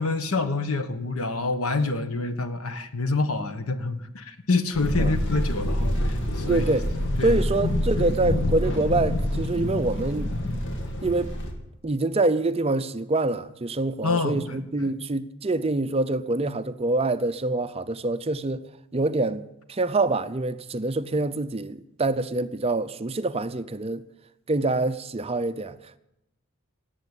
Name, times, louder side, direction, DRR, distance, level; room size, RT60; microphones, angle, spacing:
voice 1, 0.0-6.6 7.2-7.4 14.0-14.9, left 3 dB, 80° left, 1.3 m, -27 dB
sound 1, 4.7-11.5, left 1 dB, 55° left, 2.4 m, -26 dB
voice 2, 6.4-6.9 7.2-10.3 11.0-11.3 11.8-18.6 18.9-24.0 24.5-25.8, right 2 dB, 30° right, 0.5 m, -26 dB
17.5 x 8.4 x 8.2 m
head